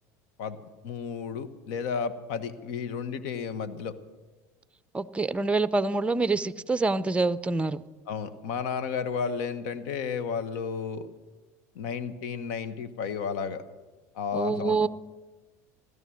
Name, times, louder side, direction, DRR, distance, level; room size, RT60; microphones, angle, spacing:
voice 1, 0.8-3.9 8.1-11.1 11.7-13.6 14.1-14.9, left 6 dB, 70° left, 12 dB, 1.3 m, -32 dB
voice 2, 4.9-7.8 14.3-14.9, right 3 dB, 15° right, 15 dB, 0.6 m, -26 dB
17.0 x 12.5 x 6.4 m, 1.2 s
hypercardioid pair, 85°, 9 cm